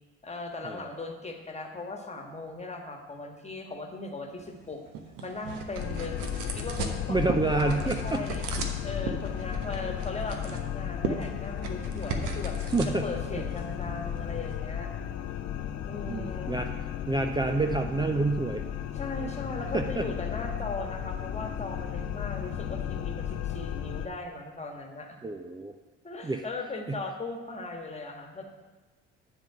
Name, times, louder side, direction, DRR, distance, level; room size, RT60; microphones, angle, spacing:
voice 1, 0.2-4.8 5.2-6.2 6.5-8.5 8.8-12.6 13.0-14.9 15.9-16.5 18.9-25.2 26.0-28.4, left 3 dB, 20° left, 2 dB, 1.6 m, -38 dB
sound 1, 4.4-14.6, right 5 dB, 60° right, 1.1 m, -38 dB
sound 2, 5.8-24.1, left 9 dB, 50° left, 0.7 m, -34 dB
voice 2, 7.1-8.2 12.1-12.3 12.7-13.1 16.1-18.6 19.7-20.1 25.2-25.7 26.2-26.4 26.9-27.0, right 3 dB, 15° right, 6 dB, 0.5 m, -28 dB
10.5 x 3.8 x 6.8 m, 1.2 s
figure-of-eight pair, 55°, 34 cm